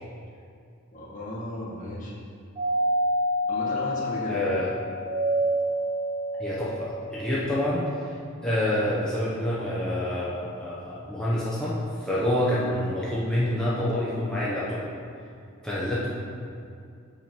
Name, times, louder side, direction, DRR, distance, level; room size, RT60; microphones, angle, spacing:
voice 1, 0.9-2.1 3.5-4.4 12.2-12.4, equal, 40° left, -6 dB, 1.6 m, -35 dB
Doorbell, 2.6-7.4, equal, 35° right, 0.9 m, -27 dB
voice 2, 4.3-4.7 6.4-7.8 8.4-14.8 15.6-16.2, left 1 dB, 5° left, -9 dB, 0.9 m, -27 dB
7.0 x 5.7 x 4.5 m, 2.4 s
head